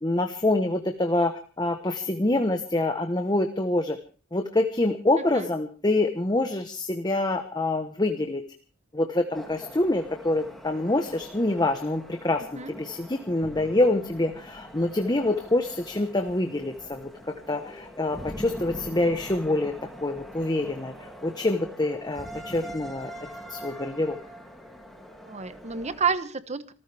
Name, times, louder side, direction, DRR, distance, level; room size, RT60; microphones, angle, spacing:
voice 1, 0.0-4.0 4.3-8.4 8.9-20.9 21.2-23.1 23.5-24.2, left 2 dB, 20° left, 6 dB, 1.1 m, -26 dB
voice 2, 5.2-5.5 12.6-12.7 25.3-26.7, right 5 dB, 30° right, 13 dB, 1.1 m, -30 dB
sound 1, 9.3-26.1, equal, ahead, 2.6 m, -43 dB
27.0 x 14.5 x 3.5 m, 0.36 s
head